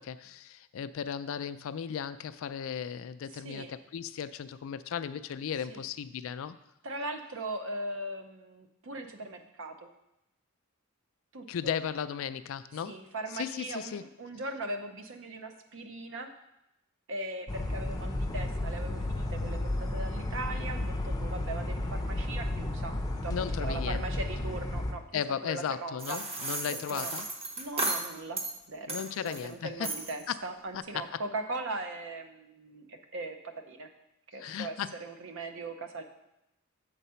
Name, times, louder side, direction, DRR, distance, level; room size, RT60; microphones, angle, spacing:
voice 1, 0.0-6.6 11.5-13.0 13.3-14.0 23.3-24.0 25.1-27.2 28.9-29.9 30.3-30.4 30.7-31.2 34.4-35.0, left 8 dB, 65° left, 13 dB, 0.3 m, -36 dB
voice 2, 3.3-3.7 5.7-5.9 6.8-9.9 11.3-11.7 12.8-16.3 17.1-23.0 23.2-23.3 23.6-26.2 26.7-27.1 27.6-28.4 28.7-33.9 34.3-36.0, right 2 dB, 65° right, 6 dB, 0.7 m, -39 dB
sound 1, 17.5-24.9, left 1 dB, 20° left, 0.6 m, -33 dB
sound 2, 26.0-28.5 28.9-29.5 29.8-30.2, right 2 dB, 30° right, 0.8 m, -34 dB
7.4 x 4.1 x 5.6 m, 0.87 s
head